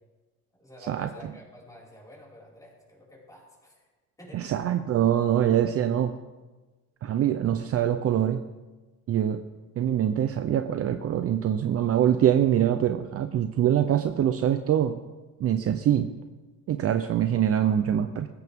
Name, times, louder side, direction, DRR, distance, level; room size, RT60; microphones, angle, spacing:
voice 1, 0.5-3.9 4.2-4.4 17.6-17.8, equal, 10° left, -5 dB, 5.4 m, -49 dB
voice 2, 4.3-6.1 7.0-8.4 9.1-9.4 9.8-15.0 15.4-16.1 16.7-18.3, right 10 dB, 40° right, 8 dB, 0.7 m, -24 dB
20.0 x 15.5 x 3.7 m, 1.2 s
cardioid pair, 135°, 36 cm